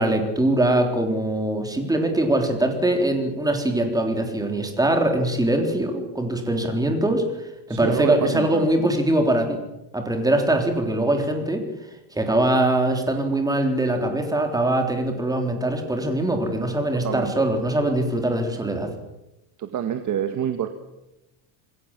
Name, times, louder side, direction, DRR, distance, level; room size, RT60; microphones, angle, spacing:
voice 1, 0.0-7.2 7.7-9.6 9.9-11.6 12.1-18.9, right 1 dB, 5° right, 4 dB, 3.8 m, -22 dB
voice 2, 7.7-8.7 17.0-17.4 19.6-20.7, right 9 dB, 35° right, 7 dB, 1.8 m, -27 dB
27.5 x 21.0 x 7.5 m, 0.96 s
cardioid pair, 160°, 49 cm